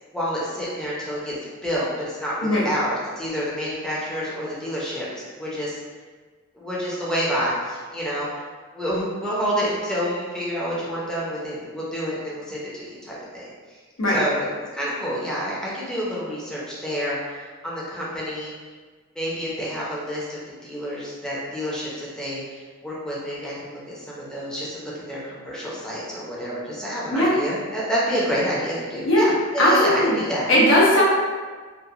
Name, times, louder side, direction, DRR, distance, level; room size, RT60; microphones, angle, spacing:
voice 1, 0.1-1.4 1.6-5.8 6.5-8.4 8.7-13.4 14.1-14.4 14.7-18.5 19.2-30.5, equal, 5° left, -7 dB, 0.6 m, -28 dB
voice 2, 29.6-30.2 30.5-31.0, left 1 dB, 70° left, -5 dB, 0.6 m, -17 dB
2.9 x 2.1 x 2.4 m, 1.5 s
head